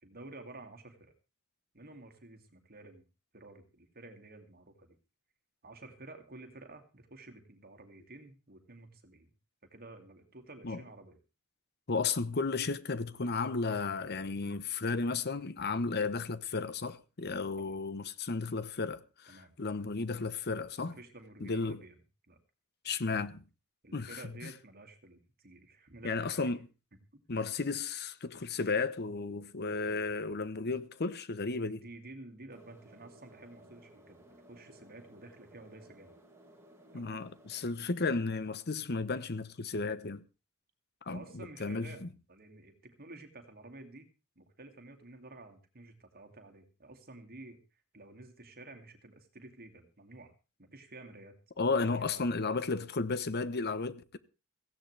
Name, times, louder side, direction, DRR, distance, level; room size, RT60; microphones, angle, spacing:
voice 1, 0.0-1.1 1.7-3.1 3.3-5.0 5.6-9.3 9.7-11.2 17.6-17.7 19.3-19.5 20.8-22.0 22.3-22.4 23.8-26.5 27.1-27.2 31.7-36.2 36.9-37.1 41.1-44.1 44.4-50.3 50.6-51.3 51.7-52.8, right 2 dB, 45° right, 2.4 m, -52 dB
voice 2, 11.9-21.0 21.4-21.8 22.8-23.4 23.9-24.5 26.0-26.7 27.3-31.8 36.9-40.2 41.1-42.1 51.6-54.2, left 4 dB, 50° left, 0.9 m, -34 dB
sound 1, 32.5-37.7, right 1 dB, 15° right, 2.7 m, -58 dB
17.0 x 15.5 x 3.4 m
head